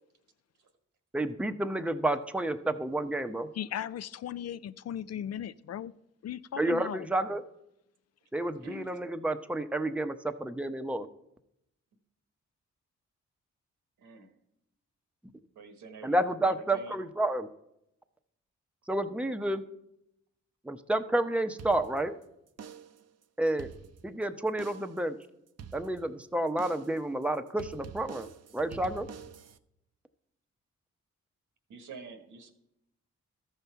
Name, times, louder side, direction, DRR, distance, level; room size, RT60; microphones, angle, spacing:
voice 1, 1.1-3.5 6.6-7.4 8.3-11.1 16.0-17.5 18.9-19.6 20.7-22.1 23.4-23.7 24.0-25.2 25.7-28.3 28.5-29.1, right 1 dB, 5° right, 8 dB, 0.7 m, -30 dB
voice 2, 3.5-5.9 6.2-7.1, left 10 dB, 60° left, 15 dB, 0.4 m, -37 dB
voice 3, 14.0-14.3 15.5-17.0 31.7-32.5, right 3 dB, 85° right, 7 dB, 1.3 m, -47 dB
sound 1, 21.6-22.2 22.6-23.1 23.5-24.2 24.6-25.1 25.6-26.2 26.6-27.1 27.6-29.6, right 7 dB, 55° right, 0.6 m, -47 dB
13.5 x 5.6 x 4.6 m, 0.82 s
cardioid pair, 50°, 30 cm